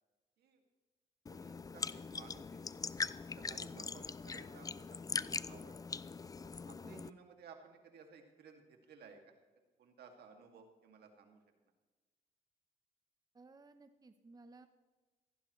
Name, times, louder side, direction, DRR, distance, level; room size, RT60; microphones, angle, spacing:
sound 1, 1.3-7.1, left 4 dB, 20° left, 0.4 m, -42 dB
voice 1, 1.3-2.8 3.3-5.8 6.4-9.2 9.8-11.4, right 5 dB, 75° right, 4 dB, 2.3 m, -58 dB
voice 2, 3.7-4.0 6.8-7.2 13.3-14.7, right 3 dB, 25° right, 9 dB, 0.8 m, -57 dB
17.0 x 15.0 x 3.2 m, 1.3 s
cardioid pair, 95°, 17 cm